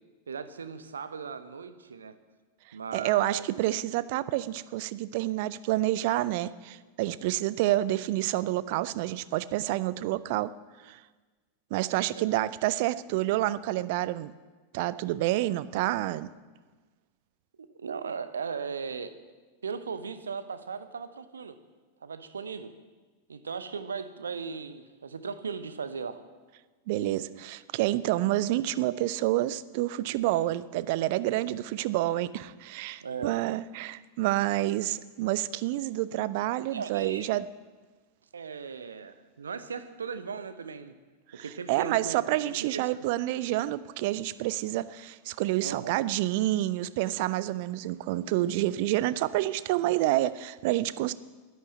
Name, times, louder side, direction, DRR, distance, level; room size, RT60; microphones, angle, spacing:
voice 1, 0.3-2.1 2.7-3.5 12.2-12.3 17.6-19.2 19.6-21.6 22.0-22.7 23.3-26.2 33.0-33.3 36.7-37.3 38.3-40.9 41.3-42.2 42.5-42.8 45.6-45.9, right 5 dB, 70° right, 0.8 m, -37 dB
voice 2, 2.9-10.5 10.8-11.0 11.7-14.3 14.7-16.3 26.9-37.4 41.4-51.1, right 15 dB, 50° right, 0.5 m, -28 dB
11.0 x 9.5 x 7.9 m
figure-of-eight pair, 90°, 0 cm